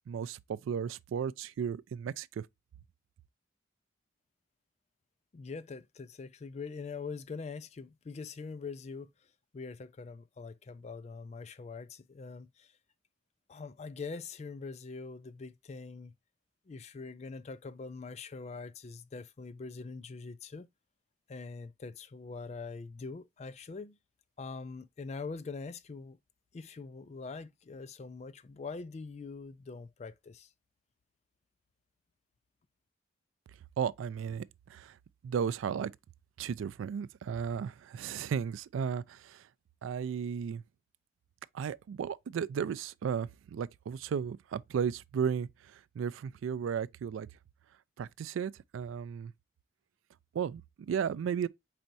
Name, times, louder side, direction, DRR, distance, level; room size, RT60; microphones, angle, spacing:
voice 1, 0.1-2.4 33.8-34.4 34.7-34.9 35.2-35.9 36.4-39.4 39.8-40.6 41.5-47.3 48.0-49.3 50.3-51.5, right 7 dB, 85° right, 0.3 m, -34 dB
voice 2, 5.3-9.1 9.5-12.7 13.5-16.1 16.7-20.7 21.3-24.0 24.4-26.2 26.5-30.5, left 4 dB, 35° left, 0.3 m, -43 dB
4.5 x 4.2 x 2.5 m
head